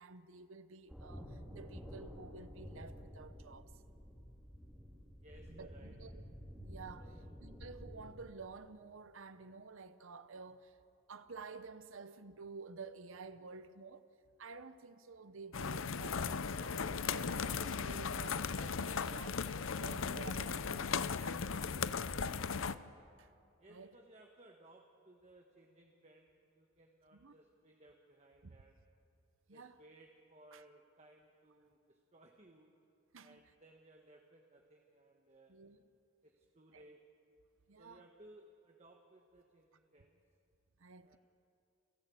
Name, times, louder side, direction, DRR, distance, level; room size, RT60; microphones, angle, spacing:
voice 1, 0.0-3.7 5.5-6.2 6.5-7.1 7.4-10.8 11.1-14.1 14.4-22.4 23.2-23.3 23.7-24.0 27.1-27.3 28.4-28.6 29.5-29.8 30.5-30.6 33.1-33.4 35.5-35.8 36.7-36.9 37.7-38.1 40.8-41.2, right 4 dB, 65° right, 0.8 m, -52 dB
sound 1, 0.9-8.2, equal, ahead, 2.6 m, -51 dB
voice 2, 5.2-6.0 7.0-7.3 23.6-28.8 29.5-32.7 33.2-35.6 36.2-37.0 37.8-40.2 41.0-41.2, right 1 dB, 30° right, 1.4 m, -62 dB
sound 2, 15.5-22.8, left 5 dB, 65° left, 0.6 m, -37 dB
29.0 x 15.0 x 8.4 m
head